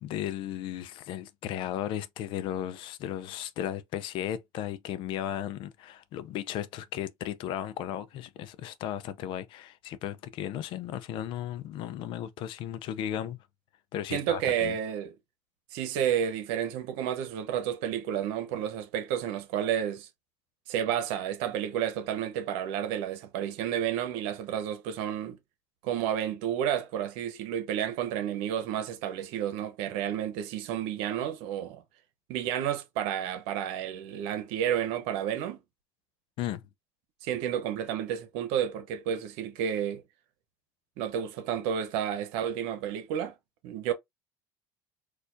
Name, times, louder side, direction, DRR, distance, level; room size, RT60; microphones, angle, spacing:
voice 1, 0.0-13.4 13.9-14.8 36.4-36.6, left 11 dB, 65° left, 0.5 m, -35 dB
voice 2, 14.1-15.1 15.7-20.1 20.7-25.4 25.8-31.8 32.3-35.6 37.2-40.0 41.0-43.3 43.6-43.9, right 9 dB, 75° right, 0.9 m, -31 dB
4.3 x 2.4 x 2.6 m
supercardioid pair, 80°, 9 cm